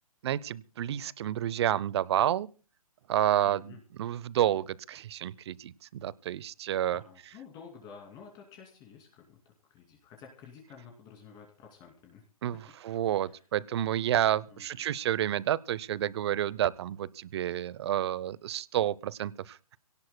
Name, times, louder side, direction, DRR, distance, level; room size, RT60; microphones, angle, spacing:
voice 1, 0.2-2.5 3.1-7.0 12.4-12.6 12.8-19.8, right 11 dB, 45° right, 22 dB, 0.7 m, -30 dB
voice 2, 3.4-3.8 6.9-12.3 13.2-13.5 14.5-14.8, left 6 dB, 20° left, 2 dB, 2.6 m, -51 dB
27.0 x 17.5 x 2.2 m, 0.35 s
hypercardioid pair, 150°, 19 cm